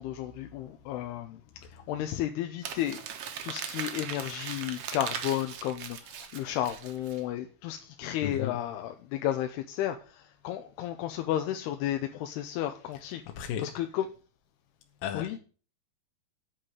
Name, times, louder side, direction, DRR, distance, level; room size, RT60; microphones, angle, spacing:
voice 1, 0.0-1.4 1.7-3.0 3.4-14.1 15.1-15.4, left 12 dB, 90° left, 2.8 m, -33 dB
Crumpling crinkling, 2.6-7.2, right 8 dB, 75° right, 1.4 m, -39 dB
voice 2, 8.2-8.6 13.3-13.7 15.0-15.4, left 9 dB, 70° left, 2.5 m, -34 dB
9.1 x 5.8 x 8.0 m
omnidirectional pair, 4.5 m